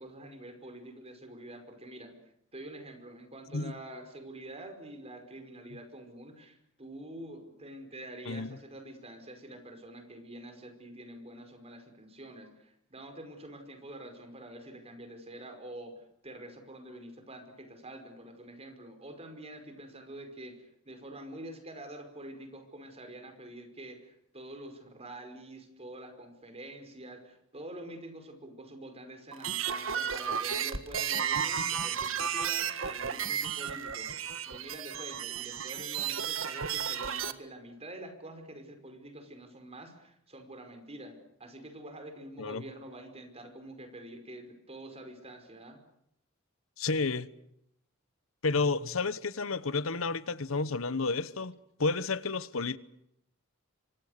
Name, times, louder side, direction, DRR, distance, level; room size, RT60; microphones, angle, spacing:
voice 1, 0.0-2.2 2.5-34.1 34.5-45.8, right 1 dB, 30° right, 5.3 m, -46 dB
sound 1, 29.3-37.3, right 8 dB, 75° right, 1.7 m, -33 dB
voice 2, 46.8-47.3 48.4-52.8, left 3 dB, 80° left, 1.1 m, -31 dB
28.0 x 25.0 x 6.7 m
head